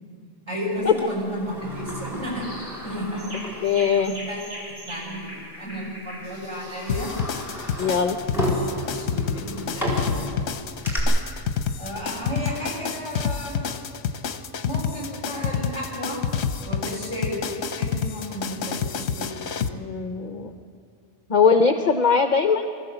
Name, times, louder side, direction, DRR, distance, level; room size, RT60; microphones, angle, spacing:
voice 1, 0.5-2.5 2.8-3.4 3.9-4.5 4.9-7.2 8.3-8.4 8.8-10.2 11.8-13.6 14.6-16.2 16.6-17.4 17.8-19.3 19.6-19.9, equal, 25° right, -3 dB, 6.2 m, -33 dB
Sliding door, 1.0-4.2 4.6-4.7 5.6-5.8 6.3-11.0, equal, ahead, 4.6 m, -33 dB
sound 1, 2.4-2.8 3.2-7.9, equal, 60° right, 7.2 m, -41 dB
voice 2, 3.6-4.1 7.8-8.2 19.7-20.5 21.3-22.7, left 5 dB, 45° left, 7 dB, 0.8 m, -20 dB
sound 2, 6.9-19.7, left 7 dB, 65° left, 1.1 m, -28 dB
23.0 x 14.5 x 8.0 m, 2.5 s
omnidirectional pair, 1.2 m